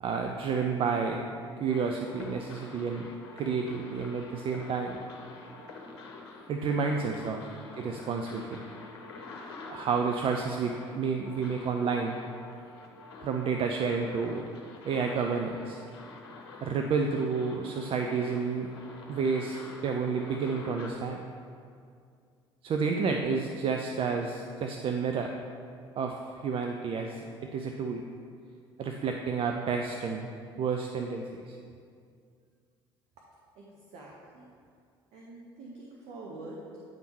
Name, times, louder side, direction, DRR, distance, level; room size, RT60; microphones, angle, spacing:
voice 1, 0.0-1.2 1.6-3.1 3.4-5.0 6.5-7.4 7.8-8.6 9.7-12.2 13.2-14.5 14.8-15.8 16.6-18.7 19.1-21.2 22.6-25.3 25.9-27.3 27.5-28.0 28.8-30.3 30.6-31.6, right 5 dB, 40° right, 3 dB, 0.5 m, -30 dB
sound 1, 1.7-20.9, left 3 dB, 75° left, 0.8 m, -47 dB
voice 2, 33.5-34.5 35.1-36.8, right 2 dB, 60° right, -3 dB, 1.0 m, -46 dB
9.3 x 3.5 x 4.5 m, 2.3 s
hypercardioid pair, 60°, 13 cm